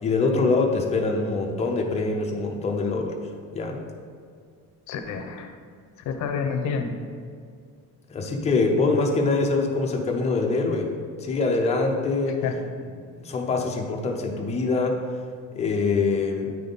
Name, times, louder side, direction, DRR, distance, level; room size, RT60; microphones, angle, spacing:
voice 1, 0.0-3.2 3.5-3.8 8.1-10.9 11.2-12.4 13.2-15.0 15.5-16.5, left 3 dB, 20° left, 1 dB, 0.5 m, -24 dB
voice 2, 4.9-5.6 6.0-7.0 12.3-12.7, left 5 dB, 55° left, 6 dB, 0.7 m, -29 dB
9.1 x 3.5 x 4.0 m, 2.2 s
cardioid pair, 175°, 35 cm